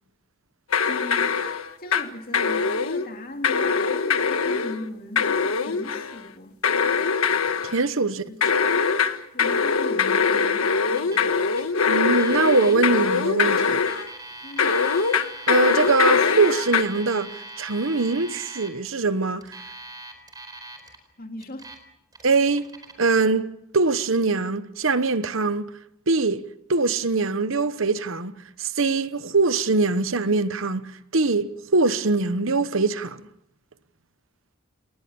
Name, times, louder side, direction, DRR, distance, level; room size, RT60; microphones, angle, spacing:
sound 1, 0.7-2.1 2.3-3.1 3.4-4.8 5.2-6.2 6.6-7.8 8.4-14.1 14.6-16.8, left 5 dB, 85° left, 1.5 m, -22 dB
voice 1, 0.9-1.3 1.8-6.6 8.2-8.4 9.3-11.3 14.4-14.7 21.2-21.7, left 1 dB, 45° left, 2.6 m, -38 dB
voice 2, 7.6-8.2 11.9-13.8 15.5-19.6 22.2-22.7 23.0-25.7 26.1-33.2, right 3 dB, 65° right, 1.1 m, -23 dB
Alarm, 11.0-11.3 11.5-11.6 12.1-12.7 13.7-18.7 19.4-21.0 21.4-21.8 22.1-22.9, right 2 dB, 20° right, 4.5 m, -41 dB
29.0 x 19.5 x 7.0 m
head